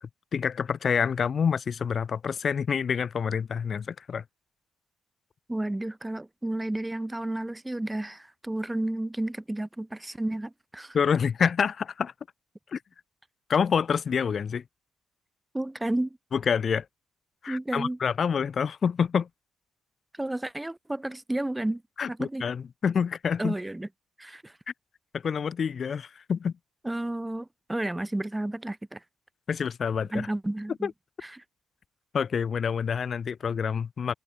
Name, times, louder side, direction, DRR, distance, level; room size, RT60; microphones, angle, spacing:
voice 1, 0.0-4.2 10.9-12.1 12.7-12.8 13.5-14.6 16.3-16.9 17.4-19.3 22.0-23.6 25.1-26.5 29.5-30.3 30.8-30.9 32.1-34.1, left 6 dB, 50° left, 1.6 m, -27 dB
voice 2, 5.5-11.0 15.5-16.2 17.5-18.0 20.2-21.8 22.1-22.4 23.4-23.9 24.2-24.5 26.8-29.0 30.1-30.9 31.2-31.4, right 1 dB, 10° right, 2.1 m, -32 dB
cardioid pair, 90°, 0 cm